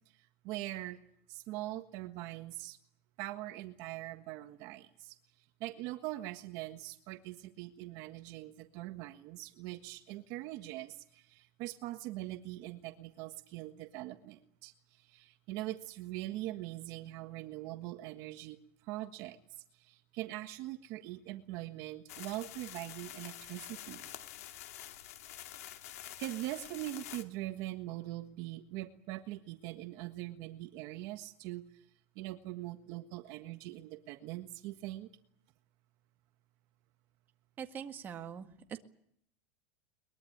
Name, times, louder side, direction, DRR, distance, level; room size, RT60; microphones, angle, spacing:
voice 1, 0.1-1.0 1.3-2.8 3.2-5.2 5.6-18.6 18.8-19.4 19.8-24.1 26.2-31.8 32.1-35.1, right 16 dB, 50° right, 8 dB, 1.5 m, -42 dB
sound 1, 22.1-27.2, left 12 dB, 85° left, 2.3 m, -47 dB
voice 2, 37.6-38.8, right 8 dB, 25° right, 6 dB, 1.8 m, -43 dB
22.5 x 22.0 x 8.8 m, 0.68 s
supercardioid pair, 150°, 8 cm